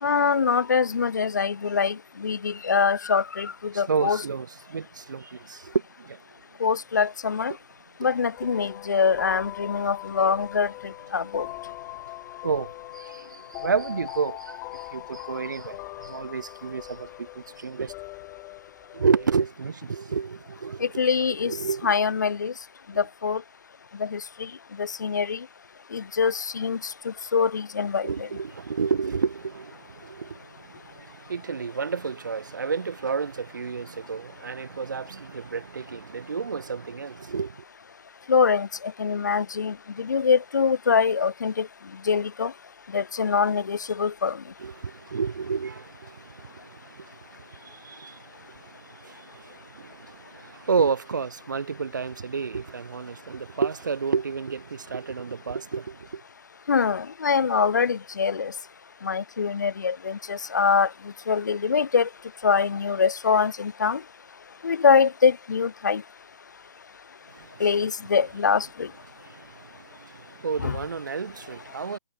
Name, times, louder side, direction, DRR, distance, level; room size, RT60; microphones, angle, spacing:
voice 1, 0.0-2.0 2.2-4.2 6.6-7.5 8.0-10.7 11.1-11.5 20.8-21.5 21.8-22.5 23.0-23.4 24.0-24.2 24.8-25.4 25.9-26.8 27.1-28.3 38.3-38.7 39.0-41.7 42.1-42.5 42.9-44.4 56.7-58.5 59.0-60.9 61.3-62.1 62.4-64.0 64.6-66.0 67.6-68.9 70.6-70.8, left 6 dB, 55° left, 2.0 m, -23 dB
voice 2, 3.7-6.2 12.4-17.9 18.9-21.0 21.4-21.9 28.0-37.6 44.6-56.2 67.3-67.7 69.1-72.0, right 5 dB, 60° right, 1.7 m, -31 dB
sound 1, 8.4-19.4, left 28 dB, 20° left, 4.9 m, -41 dB
figure-of-eight pair, 130°, 12 cm